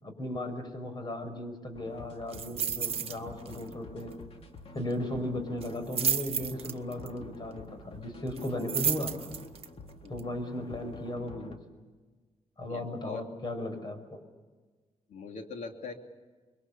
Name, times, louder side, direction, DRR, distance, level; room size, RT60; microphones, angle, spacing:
voice 1, 0.0-4.1 4.7-9.1 10.1-11.6 12.6-14.2, left 1 dB, 35° left, 8 dB, 5.7 m, -36 dB
sound 1, 1.7-11.6, left 2 dB, 50° left, 2.5 m, -48 dB
sound 2, 2.3-3.2 3.5-3.7 4.0-4.1 5.6-7.1 8.4-9.7 10.2-10.3, right 7 dB, 50° right, 1.3 m, -31 dB
voice 2, 12.7-13.3 15.1-15.9, left 4 dB, 80° left, 4 dB, 2.9 m, -41 dB
26.5 x 23.0 x 7.0 m, 1.3 s
cardioid pair, 95°, 12 cm